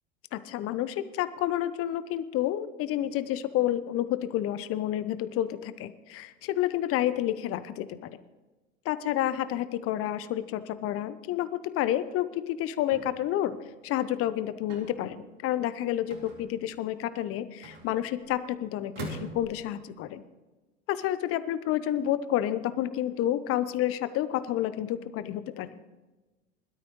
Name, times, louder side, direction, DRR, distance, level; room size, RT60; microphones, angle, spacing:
voice 1, 0.3-7.9 8.8-11.5 11.7-13.6 13.8-20.2 20.9-25.8, left 12 dB, 35° left, 14 dB, 0.8 m, -29 dB
sound 1, 12.9-13.3 14.7-15.0 16.1-16.7 17.6-18.3 19.0-19.7, right 3 dB, 65° right, 4.0 m, -42 dB
21.0 x 12.5 x 3.1 m, 1.2 s
figure-of-eight pair, 85°, 39 cm